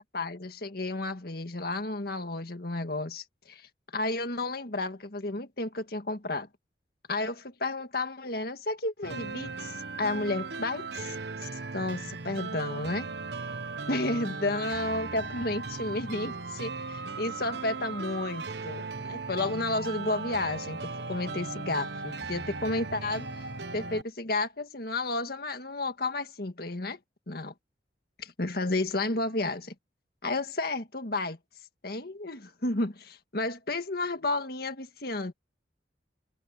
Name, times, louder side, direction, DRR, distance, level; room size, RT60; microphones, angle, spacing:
voice 1, 0.0-6.5 7.1-13.1 13.9-23.3 23.7-27.0 27.3-27.5 28.2-29.7 30.2-31.4 31.8-35.3, left 2 dB, 60° left, 1.8 m, -32 dB
sound 1, 9.0-24.0, right 4 dB, 70° right, 1.1 m, -37 dB
head